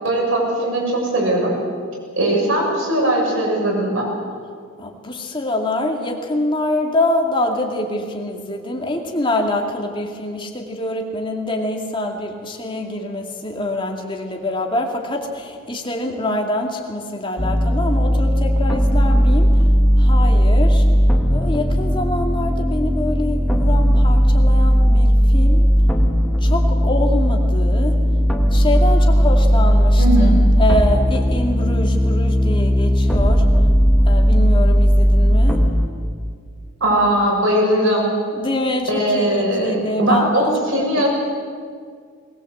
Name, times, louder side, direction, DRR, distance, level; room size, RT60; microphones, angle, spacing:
voice 1, 0.0-1.5 2.2-4.1 30.0-30.3 36.8-38.1 38.9-41.1, right 1 dB, 60° right, -1 dB, 6.7 m, -19 dB
voice 2, 4.8-19.6 20.0-20.8 21.3-25.7 26.4-28.0 28.5-33.4 34.0-35.6 38.3-40.5 41.0-41.1, left 1 dB, 20° left, 1 dB, 2.5 m, -25 dB
sound 1, 17.4-35.9, equal, ahead, 1.8 m, -16 dB
21.0 x 20.5 x 8.0 m, 2.1 s
head